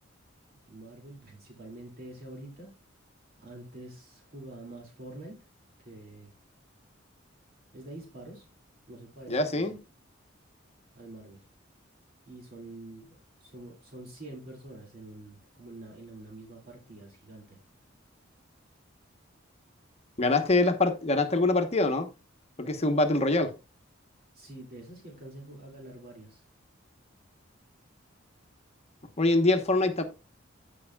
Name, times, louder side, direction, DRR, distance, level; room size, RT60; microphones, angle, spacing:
voice 1, 0.7-2.7 3.4-5.4 5.8-6.3 7.7-8.5 8.9-9.8 10.9-11.4 12.3-13.1 13.4-17.6 24.3-26.4, right 2 dB, 50° right, 2.5 m, -46 dB
voice 2, 9.3-9.7 20.2-22.1 22.6-23.5 29.2-30.0, left 2 dB, 35° left, 1.1 m, -24 dB
16.0 x 5.4 x 2.3 m
head